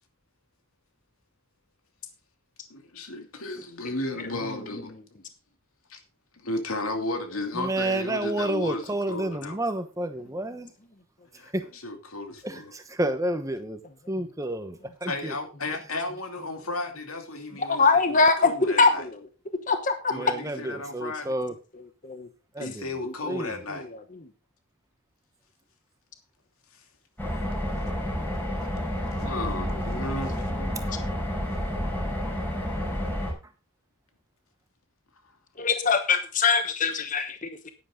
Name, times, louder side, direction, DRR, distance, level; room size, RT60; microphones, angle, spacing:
voice 1, 2.7-4.9 5.9-6.0 6.3-9.6 11.4-12.7 15.0-19.1 20.1-21.3 22.6-23.9 29.2-30.4 30.9-31.0, left 2 dB, 90° left, 2.7 m, -34 dB
voice 2, 7.5-10.7 11.5-11.6 12.4-13.8 14.1-15.3 20.1-21.5 22.5-22.9 23.2-23.6, right 1 dB, 15° right, 1.0 m, -30 dB
voice 3, 17.7-19.1 19.7-20.1 20.6-20.8 22.0-22.3 23.0-23.5 23.7-23.9 35.6-37.7, left 4 dB, 40° left, 1.1 m, -23 dB
sound 1, 27.2-33.3, equal, 10° left, 4.6 m, -30 dB
11.0 x 10.5 x 3.8 m
head